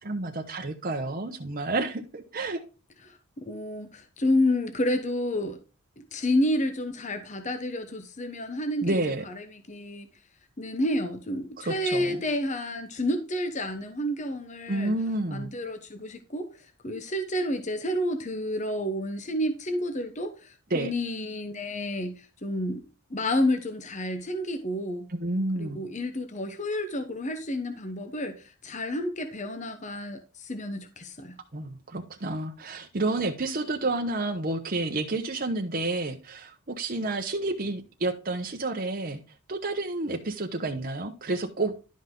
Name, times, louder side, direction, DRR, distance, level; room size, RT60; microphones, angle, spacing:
voice 1, 0.0-2.6 8.8-9.2 11.6-12.2 14.7-15.5 20.7-20.9 25.1-25.8 31.5-39.2 39.5-41.7, right 2 dB, 40° right, 0.9 m, -30 dB
voice 2, 3.4-5.6 6.0-9.0 9.3-10.1 10.6-15.0 15.3-22.8 23.1-25.1 25.5-31.4, left 1 dB, 30° left, 1.0 m, -30 dB
11.5 x 5.7 x 3.8 m
head